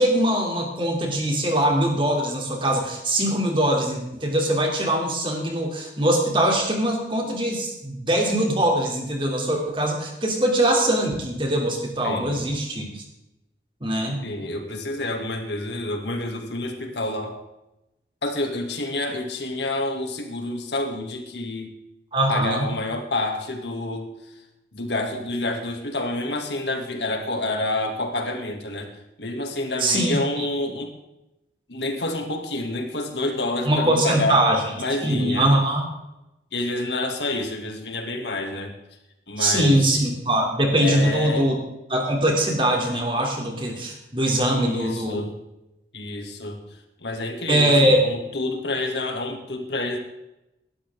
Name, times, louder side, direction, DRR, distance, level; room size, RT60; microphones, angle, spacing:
voice 1, 0.0-13.0 13.8-14.2 22.1-22.7 29.8-30.5 33.7-34.6 35.0-35.8 39.4-41.6 41.9-45.2 47.5-48.0, right 1 dB, 30° right, 1 dB, 3.1 m, -22 dB
voice 2, 12.0-12.4 14.2-17.4 18.2-21.7 22.3-24.3 24.7-28.9 29.2-30.9 31.7-34.4 34.8-35.5 36.5-38.7 39.3-40.0 40.8-41.5 44.5-45.3 45.9-46.6 47.0-50.0, left 2 dB, 80° left, 3 dB, 2.5 m, -28 dB
19.0 x 12.5 x 3.8 m, 0.93 s
head